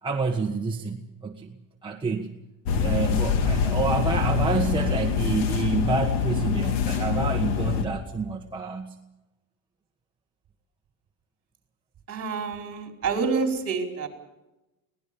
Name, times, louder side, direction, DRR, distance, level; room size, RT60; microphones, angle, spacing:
voice 1, 0.0-2.3 2.8-9.0, right 4 dB, 10° right, 0 dB, 1.5 m, -28 dB
sound 1, 2.6-7.8, left 7 dB, 80° left, 2.8 m, -25 dB
voice 2, 12.1-14.1, right 5 dB, 35° right, 4 dB, 4.9 m, -28 dB
24.0 x 18.5 x 7.1 m, 0.99 s
cardioid pair, 145°, 41 cm